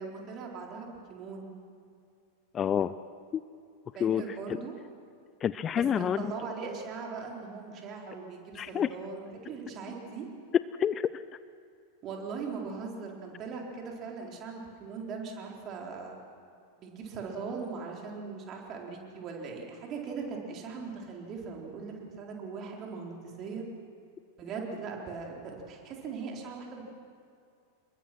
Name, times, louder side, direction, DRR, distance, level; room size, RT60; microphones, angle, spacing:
voice 1, 0.0-1.5 3.9-4.7 5.7-10.3 12.0-16.2 16.8-23.6 24.4-26.8, right 5 dB, 35° right, 0 dB, 4.1 m, -40 dB
voice 2, 2.5-2.9 3.3-3.4 4.0-4.2 4.5-4.6 5.4-6.2 8.6-8.9 10.8-11.3, left 9 dB, 25° left, 15 dB, 0.5 m, -28 dB
27.5 x 22.0 x 6.1 m, 2.3 s
figure-of-eight pair, 90°, 0 cm